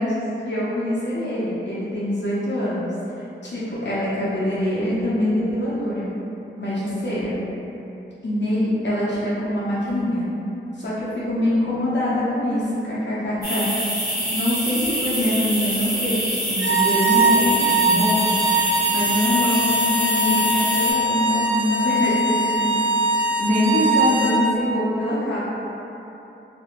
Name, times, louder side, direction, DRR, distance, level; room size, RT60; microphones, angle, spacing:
voice 1, 0.0-2.9 3.4-6.1 6.6-7.3 8.2-10.3 10.7-13.7 14.3-18.3 18.9-22.8 23.4-25.4, left 1 dB, 60° left, -9 dB, 0.6 m, -24 dB
sound 1, 13.4-20.9, equal, 50° right, 1.1 m, -25 dB
sound 2, 16.5-24.4, right 2 dB, 65° right, 0.4 m, -21 dB
2.4 x 2.1 x 2.9 m, 3.0 s
wide cardioid pair, 50°, 21 cm